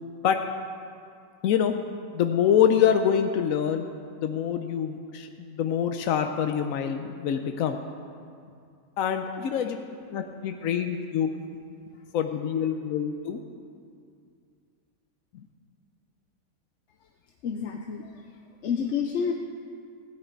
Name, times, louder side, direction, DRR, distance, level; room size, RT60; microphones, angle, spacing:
voice 1, 1.4-1.7 2.1-3.9 4.2-7.8 9.0-9.8 10.1-11.3 12.1-13.4 15.3-15.4, left 8 dB, 85° left, 6 dB, 1.1 m, -25 dB
voice 2, 17.4-18.1 18.6-19.3, left 6 dB, 65° left, 3 dB, 1.0 m, -28 dB
16.5 x 10.5 x 4.5 m, 2.3 s
omnidirectional pair, 1.4 m